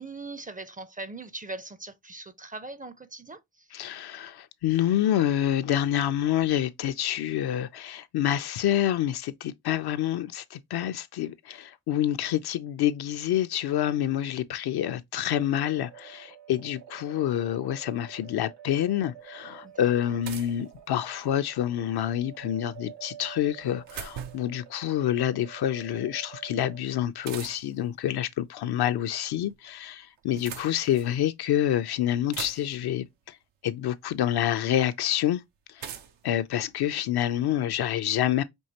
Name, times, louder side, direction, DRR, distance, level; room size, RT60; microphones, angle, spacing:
voice 1, 0.0-3.7 19.6-19.9 30.3-30.4, right 2 dB, 20° right, 0.5 m, -41 dB
voice 2, 3.7-33.4 33.6-35.4 35.8-35.9 36.2-38.4, left 11 dB, 60° left, 0.5 m, -27 dB
sound 1, 15.3-26.8, right 10 dB, 70° right, 1.1 m, -49 dB
sound 2, 19.2-19.3 20.2-21.4 23.4-24.6 27.2-27.9 29.0-29.6 30.2-31.2 31.8-31.9 32.1-33.0 34.1-34.2 35.8-37.3, right 8 dB, 85° right, 0.7 m, -42 dB
5.4 x 2.8 x 2.8 m
supercardioid pair, 50°, 43 cm